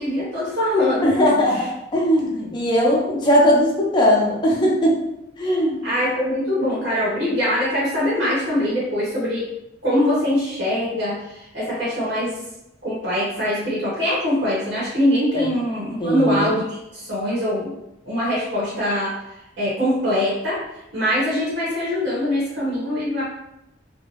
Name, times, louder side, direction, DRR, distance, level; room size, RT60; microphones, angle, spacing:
voice 1, 0.0-1.1 1.5-1.6 5.8-9.5 9.8-12.4 12.8-16.6 16.9-17.7 18.0-19.1 19.6-20.6 20.9-23.2, left 1 dB, 75° right, -9 dB, 1.1 m, -22 dB
voice 2, 1.0-5.0 5.4-5.8 15.3-15.4 16.0-16.5, equal, 25° left, -3 dB, 0.6 m, -19 dB
2.7 x 2.0 x 2.9 m, 0.88 s
head